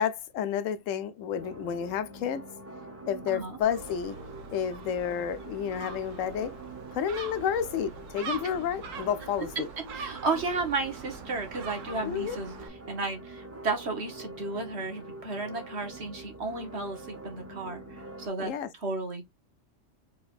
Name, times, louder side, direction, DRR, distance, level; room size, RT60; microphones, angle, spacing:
voice 1, 0.0-2.4 3.1-4.2 4.5-6.5 6.9-9.7 12.0-12.4 18.4-18.7, left 8 dB, 85° left, 1.0 m, -30 dB
sound 1, 1.3-18.3, right 2 dB, 10° right, 1.1 m, -45 dB
voice 2, 3.3-3.6 9.9-12.5 12.9-18.5 18.8-19.3, right 3 dB, 60° right, 1.6 m, -33 dB
Gull seagull, 3.6-12.7, right 4 dB, 85° right, 1.2 m, -43 dB
4.5 x 3.9 x 2.4 m
omnidirectional pair, 1.3 m